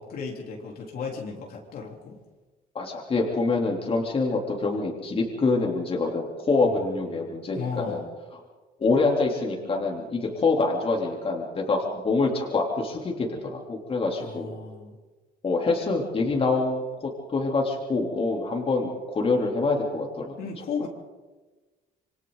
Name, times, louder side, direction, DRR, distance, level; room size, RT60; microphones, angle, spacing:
voice 1, 0.0-2.2 6.6-8.1 14.2-15.0 20.4-20.9, left 5 dB, 65° left, 0 dB, 3.7 m, -35 dB
voice 2, 2.8-8.0 8.8-14.5 15.4-20.3, left 3 dB, 35° left, 0 dB, 3.5 m, -26 dB
27.0 x 24.0 x 4.0 m, 1.3 s
cardioid pair, 110°, 17 cm